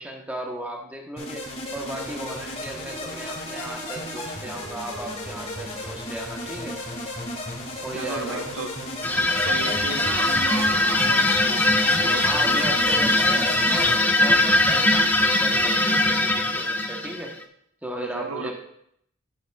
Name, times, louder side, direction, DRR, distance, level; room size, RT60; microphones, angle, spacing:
voice 1, 0.0-6.8 7.8-8.5 12.2-17.3 17.8-18.5, right 1 dB, 5° right, 0 dB, 1.0 m, -35 dB
sound 1, 1.2-14.0, left 1 dB, 30° left, 1.7 m, -34 dB
voice 2, 7.8-8.7 9.4-12.4 18.0-18.5, right 4 dB, 80° right, 6 dB, 0.8 m, -34 dB
sound 2, 9.0-17.4, left 2 dB, 10° left, 0.4 m, -21 dB
11.5 x 7.1 x 2.3 m, 0.73 s
head